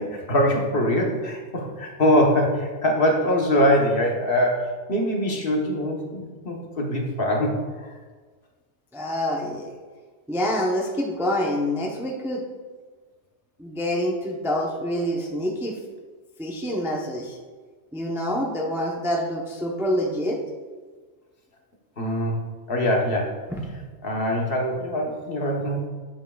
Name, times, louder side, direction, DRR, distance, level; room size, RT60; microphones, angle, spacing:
voice 1, 0.0-7.9 22.0-22.4 22.7-23.4 24.0-25.8, equal, 55° left, 0 dB, 1.2 m, -23 dB
voice 2, 8.9-9.8 10.3-12.4 13.6-15.8 16.4-17.4 17.9-20.4 23.5-23.7, equal, 5° right, -1 dB, 0.6 m, -26 dB
8.8 x 7.3 x 2.3 m, 1.4 s
omnidirectional pair, 1.2 m